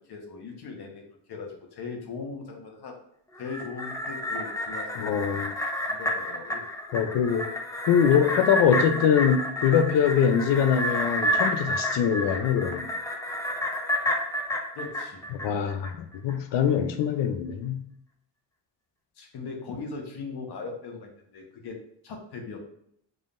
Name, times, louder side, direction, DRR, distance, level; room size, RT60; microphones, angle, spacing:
voice 1, 0.0-2.9 3.4-5.1 5.9-6.7 14.7-15.3 19.2-21.8 22.0-22.6, left 4 dB, 65° left, 2 dB, 1.2 m, -39 dB
sound 1, 3.4-15.9 16.3-16.4, left 1 dB, 10° left, 0.6 m, -30 dB
voice 2, 5.0-5.5 6.9-7.5 7.9-12.9 15.4-17.8, left 8 dB, 85° left, 8 dB, 0.7 m, -23 dB
5.3 x 3.8 x 2.6 m, 0.70 s
cardioid pair, 125°, 42 cm